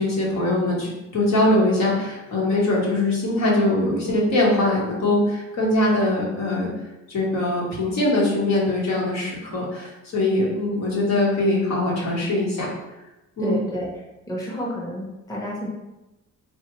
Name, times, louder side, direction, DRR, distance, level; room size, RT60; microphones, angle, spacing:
voice 1, 0.0-6.7 7.1-12.7 13.4-13.6, left 1 dB, 60° left, -4 dB, 1.1 m, -22 dB
voice 2, 13.4-13.9 14.3-15.7, equal, 10° left, -5 dB, 0.8 m, -30 dB
3.5 x 2.3 x 3.0 m, 0.98 s
cardioid pair, 90°, 30 cm